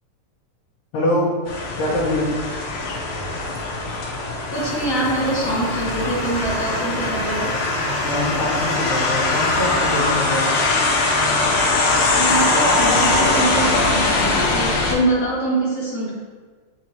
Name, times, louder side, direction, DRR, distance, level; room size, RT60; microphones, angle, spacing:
voice 1, 0.9-1.4 1.8-2.4 7.7-10.5, left 1 dB, 75° left, -10 dB, 2.7 m, -24 dB
sound 1, 1.5-15.0, left 2 dB, 90° left, 2.6 m, -21 dB
voice 2, 4.5-7.5 12.2-16.1, right 1 dB, 10° left, -9 dB, 1.2 m, -24 dB
sound 2, 4.5-10.2, right 2 dB, 65° right, 3.6 m, -35 dB
8.9 x 4.7 x 2.9 m, 1.5 s
omnidirectional pair, 3.8 m